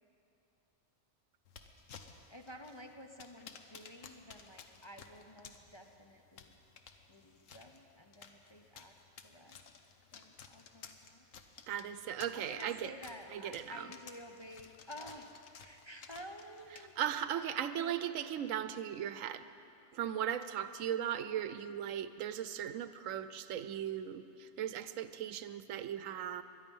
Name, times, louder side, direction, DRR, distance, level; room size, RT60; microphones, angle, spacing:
sound 1, 1.4-17.2, left 6 dB, 85° left, 1.3 m, -56 dB
voice 1, 1.6-6.5 7.1-8.9 9.2-9.6 10.1-11.2 12.0-17.0 17.3-18.2, equal, 25° left, 3 dB, 0.6 m, -52 dB
voice 2, 11.7-12.9 13.3-13.6 17.0-19.5 19.9-26.4, right 10 dB, 90° right, 12 dB, 1.0 m, -37 dB
22.0 x 11.0 x 5.4 m, 2.7 s
omnidirectional pair, 1.3 m